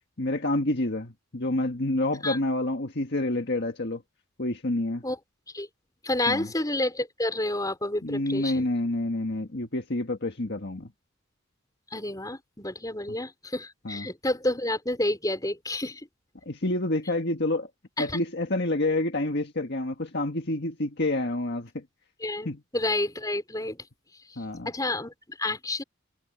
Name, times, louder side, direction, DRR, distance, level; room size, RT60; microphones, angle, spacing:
voice 1, 0.2-4.0 4.4-5.0 6.3-6.5 8.0-10.9 13.8-14.1 16.4-17.7 18.0-21.8 22.4-22.6 24.4-24.7, left 2 dB, 50° left, 1.7 m, -28 dB
voice 2, 6.0-8.7 11.9-16.0 18.0-18.2 22.2-23.8 24.6-25.8, left 1 dB, 15° left, 5.0 m, -29 dB
head